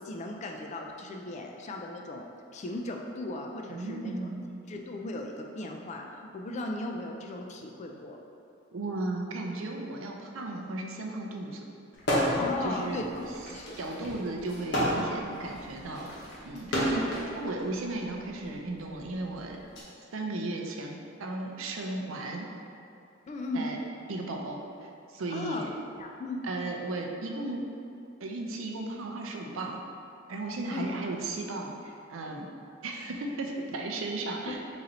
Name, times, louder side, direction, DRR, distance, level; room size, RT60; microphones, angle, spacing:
voice 1, 0.0-2.2 2.5-4.1 4.7-8.2 12.4-13.8 14.1-14.2 16.9-17.1 23.3-23.7 25.3-25.7 25.9-26.4 30.7-31.1 34.5-34.6, left 2 dB, 35° left, 1 dB, 0.3 m, -37 dB
voice 2, 3.7-4.6 8.7-11.6 12.6-13.0 13.8-16.1 16.4-17.0 17.4-19.6 20.1-22.5 23.5-23.8 24.1-25.7 26.4-27.7 28.2-29.8 30.3-32.5 32.8-34.6, right 2 dB, 85° right, 1 dB, 0.5 m, -35 dB
sound 1, 12.0-12.5 12.9-17.3 18.2-19.8, equal, 60° left, 0.9 m, -30 dB
4.0 x 2.6 x 4.2 m, 2.6 s
head